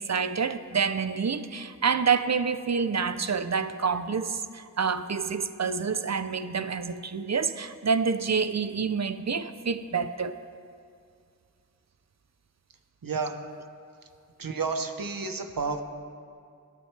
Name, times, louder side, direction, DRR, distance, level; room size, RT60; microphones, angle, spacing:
voice 1, 0.0-10.3, right 5 dB, 50° right, 11 dB, 0.6 m, -28 dB
voice 2, 13.0-13.3 14.4-15.8, right 4 dB, 80° right, 6 dB, 1.1 m, -30 dB
18.0 x 12.5 x 3.3 m, 2.3 s
wide cardioid pair, 65°, 33 cm